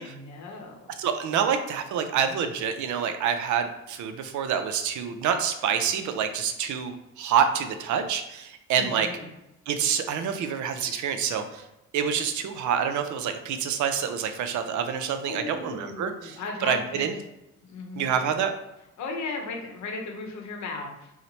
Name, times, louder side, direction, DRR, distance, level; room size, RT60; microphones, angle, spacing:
voice 1, 0.0-0.9 8.8-9.3 15.2-17.1 17.6-18.1 19.0-21.1, left 3 dB, 70° left, 2 dB, 0.8 m, -36 dB
voice 2, 1.0-9.1 9.7-11.6 11.9-17.1 18.0-18.5, right 7 dB, 75° right, 7 dB, 0.5 m, -27 dB
2.9 x 2.1 x 4.0 m, 0.89 s
cardioid pair, 90°, 30 cm